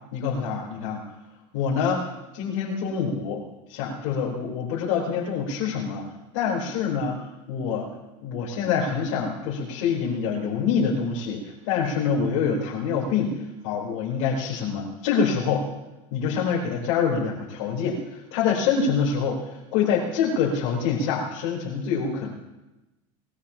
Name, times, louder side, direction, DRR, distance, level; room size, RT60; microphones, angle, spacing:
voice 1, 0.1-1.0 1.5-2.0 2.3-3.4 3.7-6.0 6.3-7.1 7.5-7.9 8.2-15.7 16.1-22.3, left 6 dB, 60° left, -3 dB, 3.7 m, -26 dB
23.5 x 20.0 x 2.8 m, 1.0 s
supercardioid pair, 160°, 17 cm